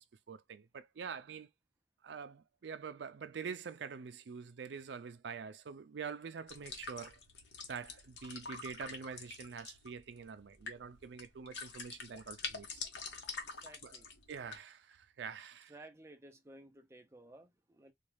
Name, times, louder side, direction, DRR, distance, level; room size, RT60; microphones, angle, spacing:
voice 1, 0.0-1.5 2.0-7.2 7.7-12.8 13.8-14.0 14.3-15.7, right 6 dB, 80° right, 0.4 m, -46 dB
sound 1, 6.5-14.6, left 4 dB, 80° left, 1.0 m, -46 dB
voice 2, 13.6-14.1 15.7-17.9, right 1 dB, 15° right, 0.6 m, -55 dB
4.1 x 2.3 x 3.2 m
head